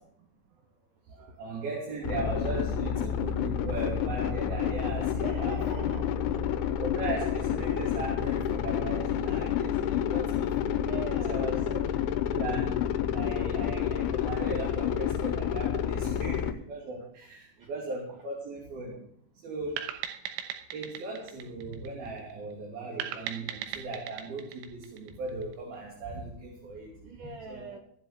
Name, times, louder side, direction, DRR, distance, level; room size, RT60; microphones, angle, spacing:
voice 1, 1.1-5.8 6.8-10.8 11.3-11.8 12.3-19.0 19.4-19.9 20.7-26.9 27.5-27.7, right 2 dB, 55° right, -3 dB, 4.5 m, -37 dB
sound 1, 2.0-16.5, left 9 dB, 85° left, 3.3 m, -29 dB
voice 2, 5.2-6.2 10.7-11.5 27.0-27.8, right 6 dB, 75° right, 4 dB, 1.9 m, -41 dB
sound 2, 19.8-22.3 23.0-25.5, right 9 dB, 90° right, 3.3 m, -39 dB
18.5 x 7.6 x 6.6 m, 0.65 s
omnidirectional pair, 5.3 m